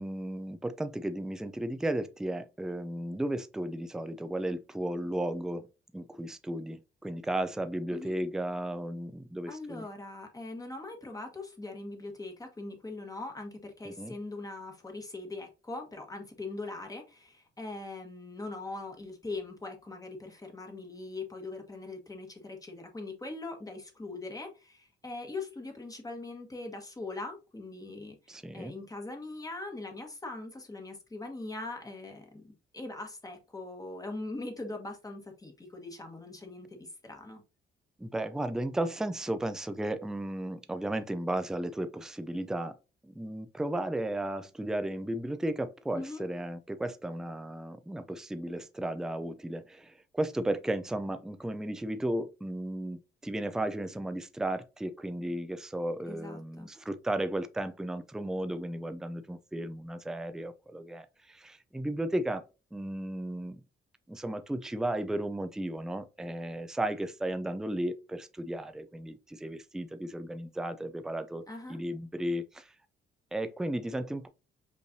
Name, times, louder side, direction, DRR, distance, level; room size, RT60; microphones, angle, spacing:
voice 1, 0.0-5.7 5.9-9.9 13.9-14.1 28.3-28.7 38.0-42.8 43.0-62.5 62.7-63.6 64.1-72.7 73.3-74.3, right 1 dB, 5° right, 0.4 m, -34 dB
voice 2, 9.5-37.4 45.9-46.2 56.1-56.7 71.5-71.8, left 2 dB, 20° left, 1.4 m, -41 dB
5.3 x 3.2 x 2.7 m
cardioid pair, 90°, 20 cm